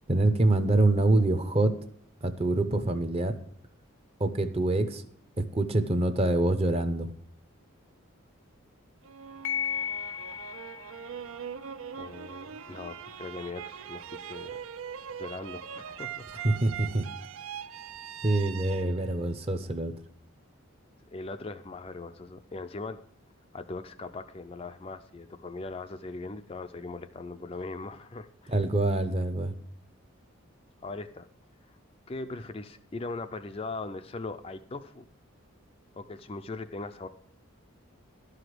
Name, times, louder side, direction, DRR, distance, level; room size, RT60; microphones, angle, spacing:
voice 1, 0.1-1.7 2.2-3.3 4.2-5.0 5.5-7.1 16.4-17.1 18.2-19.9 28.5-29.6, right 2 dB, 25° right, 10 dB, 0.6 m, -25 dB
sound 1, 9.0-20.1, right 8 dB, 70° right, 0.4 m, -42 dB
sound 2, 9.4-18.4, left 8 dB, 65° left, 0.8 m, -41 dB
voice 2, 11.9-14.6 15.2-16.6 21.1-23.0 23.5-28.6 30.8-31.3 32.1-35.1 35.9-37.1, left 3 dB, 25° left, 8 dB, 0.4 m, -40 dB
12.0 x 5.0 x 7.7 m, 0.64 s
head